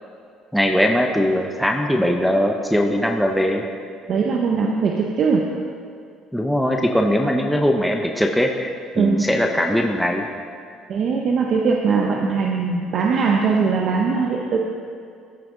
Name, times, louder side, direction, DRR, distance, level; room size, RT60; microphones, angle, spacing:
voice 1, 0.5-3.7 6.3-8.7 8.9-10.3, equal, ahead, 2 dB, 0.7 m, -20 dB
voice 2, 4.1-5.5 9.0-9.2 10.9-14.6, right 5 dB, 55° right, 0 dB, 0.8 m, -20 dB
14.0 x 5.9 x 3.9 m, 2.3 s
cardioid pair, 100°, 0 cm